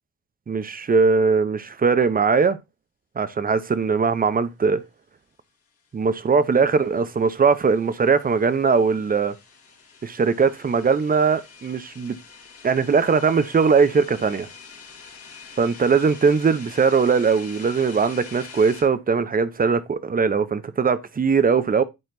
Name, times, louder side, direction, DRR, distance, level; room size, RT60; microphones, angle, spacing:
voice 1, 0.5-2.6 3.2-4.8 5.9-9.3 10.0-12.2 12.6-14.5 15.6-21.8, right 5 dB, 30° right, 0.7 m, -20 dB
sound 1, 6.2-18.8, left 5 dB, 50° left, 2.1 m, -45 dB
10.5 x 4.3 x 2.6 m
cardioid pair, 90°, 30 cm